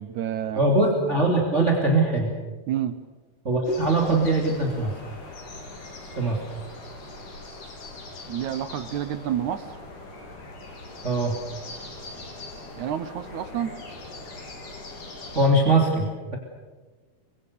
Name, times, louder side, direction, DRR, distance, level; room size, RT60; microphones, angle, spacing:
voice 1, 0.0-0.6 2.7-3.0 8.3-9.8 12.8-13.8, right 10 dB, 70° right, 12 dB, 1.9 m, -29 dB
voice 2, 0.5-2.3 3.4-4.9 6.2-6.4 11.0-11.4 15.3-16.4, right 2 dB, 20° right, 0 dB, 2.7 m, -21 dB
sound 1, 3.6-15.5, left 2 dB, 60° left, 5.1 m, -41 dB
27.5 x 24.5 x 6.8 m, 1.3 s
omnidirectional pair, 4.4 m